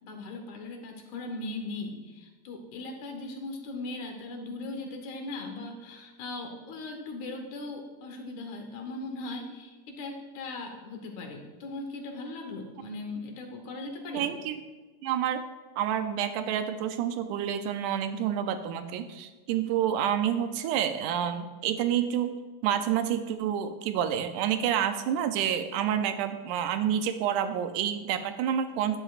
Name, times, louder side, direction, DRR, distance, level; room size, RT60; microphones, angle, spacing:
voice 1, 0.0-14.3, left 2 dB, 65° left, 3 dB, 2.3 m, -39 dB
voice 2, 14.1-14.6 15.0-15.4 15.8-22.3 22.6-29.0, right 9 dB, 85° right, 8 dB, 1.8 m, -28 dB
13.0 x 9.9 x 2.5 m, 1.2 s
omnidirectional pair, 4.1 m